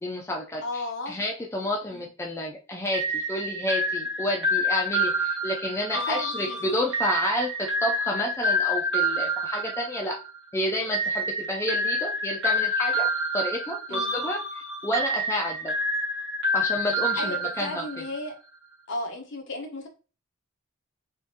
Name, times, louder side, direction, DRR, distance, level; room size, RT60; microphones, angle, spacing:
voice 1, 0.0-10.2 10.5-13.1 13.3-14.4 14.8-15.7 16.5-17.8, left 1 dB, 15° left, 0 dB, 0.4 m, -30 dB
voice 2, 0.6-1.2 1.9-2.1 5.9-6.6 13.9-14.1 17.2-18.3 18.9-19.9, left 2 dB, 60° left, 2 dB, 1.0 m, -34 dB
sound 1, 2.9-10.4 10.9-18.2, equal, 55° right, 1.3 m, -28 dB
3.6 x 3.1 x 2.8 m, 0.33 s
head